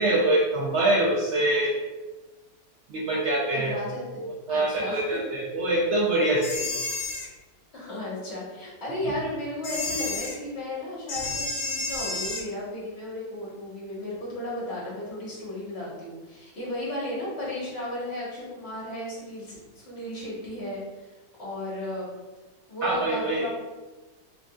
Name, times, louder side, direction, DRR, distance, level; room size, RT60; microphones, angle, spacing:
voice 1, 0.0-1.7 2.9-3.8 4.2-6.7 22.8-23.5, right 1 dB, 70° right, -3 dB, 0.6 m, -24 dB
voice 2, 3.5-4.2 4.5-5.1 7.7-21.1 21.4-22.1 22.7-23.5, left 1 dB, 40° left, -7 dB, 1.5 m, -34 dB
sound 1, 6.4-7.3 9.6-10.4 11.1-12.5, left 3 dB, 65° left, 0.7 m, -31 dB
3.7 x 3.5 x 2.4 m, 1.2 s
omnidirectional pair, 1.8 m